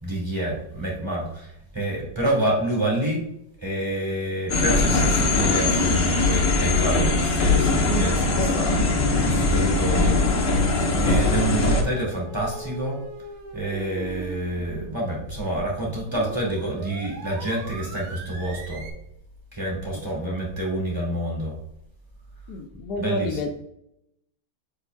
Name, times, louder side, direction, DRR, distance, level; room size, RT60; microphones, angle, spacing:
voice 1, 0.0-3.2 3.6-10.2 11.0-13.0 13.5-18.8 19.5-21.6 23.0-23.4, right 1 dB, 10° right, -3 dB, 2.1 m, -28 dB
sound 1, 4.5-11.8, left 3 dB, 50° left, 1.0 m, -21 dB
sound 2, 8.9-18.9, right 2 dB, 90° right, 2.0 m, -39 dB
voice 2, 22.5-23.6, left 2 dB, 70° left, 5 dB, 0.9 m, -29 dB
7.8 x 5.5 x 2.3 m, 0.77 s
omnidirectional pair, 2.4 m